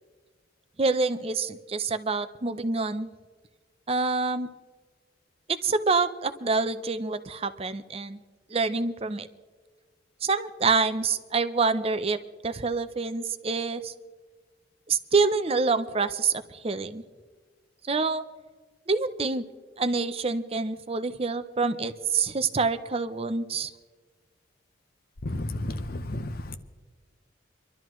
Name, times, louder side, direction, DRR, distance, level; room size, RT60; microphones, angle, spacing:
voice 1, 0.8-3.1 3.9-4.5 5.5-8.2 8.5-9.3 10.2-13.9 14.9-17.0 17.9-18.2 18.9-19.4 19.8-23.7, right 4 dB, 30° right, 11 dB, 0.6 m, -27 dB
voice 2, 25.2-26.6, left 1 dB, 50° left, 10 dB, 0.8 m, -32 dB
25.5 x 12.5 x 3.1 m, 1.4 s
head